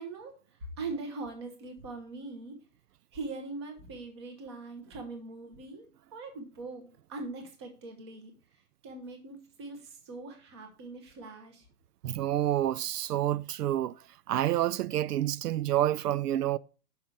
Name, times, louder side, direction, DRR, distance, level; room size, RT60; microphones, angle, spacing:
voice 1, 0.0-2.6 3.1-8.3 8.8-11.6, right 3 dB, 15° right, 0.9 m, -41 dB
voice 2, 12.0-13.9 14.3-16.6, right 13 dB, 80° right, 0.5 m, -28 dB
5.8 x 5.5 x 6.5 m
hypercardioid pair, 175°, 46 cm